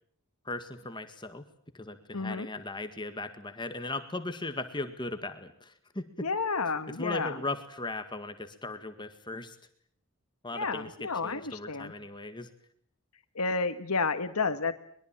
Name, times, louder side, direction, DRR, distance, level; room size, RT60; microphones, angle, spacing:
voice 1, 0.5-1.5 1.7-6.3 6.9-9.6 10.4-12.5, left 2 dB, 20° left, 8 dB, 1.8 m, -38 dB
voice 2, 2.1-2.5 6.2-7.4 10.5-11.9 13.4-14.8, left 4 dB, 90° left, 9 dB, 1.7 m, -31 dB
22.5 x 22.5 x 8.9 m, 0.64 s
head